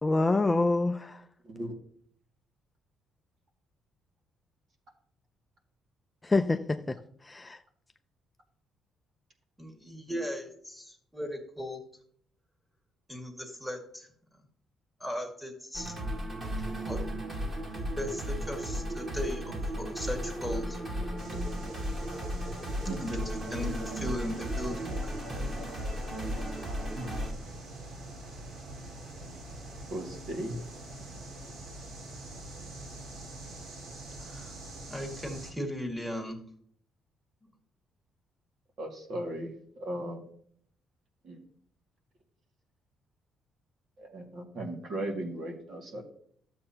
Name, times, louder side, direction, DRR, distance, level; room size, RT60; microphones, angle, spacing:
voice 1, 0.0-1.2 6.2-7.0 7.2-7.6, left 2 dB, 15° left, 7 dB, 0.4 m, -26 dB
voice 2, 9.6-11.8 13.1-14.1 15.0-15.9 16.9-17.0 17.6-20.8 23.0-25.6 34.2-34.5 34.9-36.4, equal, 5° right, 3 dB, 1.9 m, -37 dB
sound 1, 15.7-27.3, equal, 30° right, 2.3 m, -35 dB
sound 2, 21.2-35.5, right 2 dB, 75° right, 2.9 m, -44 dB
voice 3, 29.9-30.5 38.8-39.5 39.8-40.2 41.2-41.4 44.0-46.0, right 1 dB, 55° right, 1 dB, 2.2 m, -36 dB
12.5 x 7.6 x 2.9 m, 0.62 s
cardioid pair, 115°, 0 cm